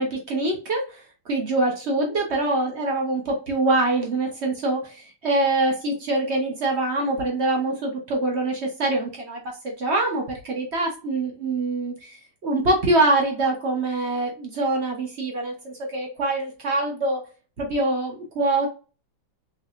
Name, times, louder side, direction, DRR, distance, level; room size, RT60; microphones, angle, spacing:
voice 1, 0.0-17.2 17.6-18.7, right 2 dB, 60° right, 1 dB, 0.7 m, -24 dB
4.7 x 3.2 x 2.4 m, 0.34 s
omnidirectional pair, 2.4 m